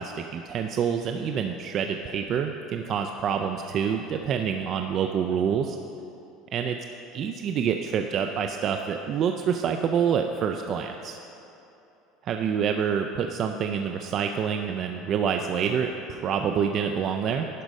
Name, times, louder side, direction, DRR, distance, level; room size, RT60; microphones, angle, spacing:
voice 1, 0.0-5.8 6.5-6.8 7.1-11.2 12.2-17.5, right 7 dB, 35° right, 5 dB, 0.3 m, -27 dB
11.0 x 5.1 x 5.3 m, 2.9 s
cardioid pair, 155°, 0 cm